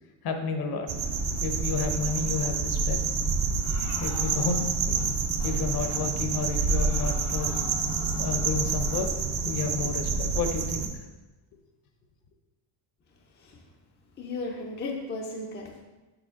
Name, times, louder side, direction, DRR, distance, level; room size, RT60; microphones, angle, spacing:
voice 1, 0.2-0.9 1.4-3.0 4.0-5.0 5.4-7.7 8.2-10.9, left 5 dB, 50° left, 5 dB, 0.9 m, -31 dB
sound 1, 0.9-10.9, right 4 dB, 35° right, 0.6 m, -28 dB
sound 2, 3.6-5.1 5.4-5.6 5.9-6.0 6.3-9.1, left 4 dB, 90° left, 1.5 m, -43 dB
voice 2, 14.2-15.8, left 2 dB, 20° left, 0 dB, 0.5 m, -35 dB
6.9 x 5.4 x 3.6 m, 1.1 s
cardioid pair, 155°, 49 cm